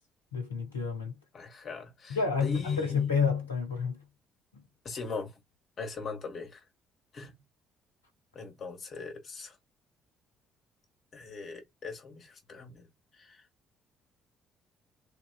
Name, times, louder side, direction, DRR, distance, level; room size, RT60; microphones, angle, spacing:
voice 1, 0.3-1.2 2.1-4.0 4.5-4.6, left 6 dB, 85° left, 1.0 m, -29 dB
voice 2, 1.3-3.0 4.9-5.4 5.8-6.6 7.1-7.4 8.3-9.6 11.1-12.9 13.1-13.4, left 4 dB, 45° left, 1.6 m, -41 dB
3.7 x 2.9 x 2.3 m
figure-of-eight pair, 50°, 0 cm